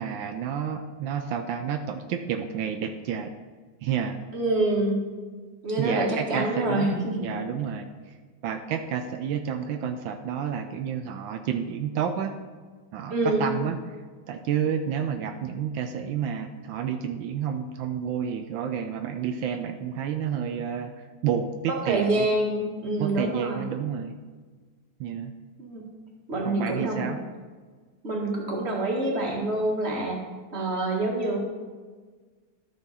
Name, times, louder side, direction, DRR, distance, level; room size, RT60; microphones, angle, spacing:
voice 1, 0.0-3.3 3.8-4.2 5.8-6.9 7.2-8.1 8.4-12.3 12.9-13.8 14.3-22.3 23.0-24.2 25.0-25.3 26.4-27.2, right 8 dB, 80° right, 7 dB, 1.3 m, -30 dB
voice 2, 4.3-5.0 5.6-7.2 13.1-13.5 21.7-23.6 25.6-25.9 26.3-27.1 28.0-30.2 30.5-31.4, right 2 dB, 35° right, -1 dB, 1.8 m, -26 dB
12.0 x 6.2 x 4.2 m, 1.4 s
omnidirectional pair, 2.1 m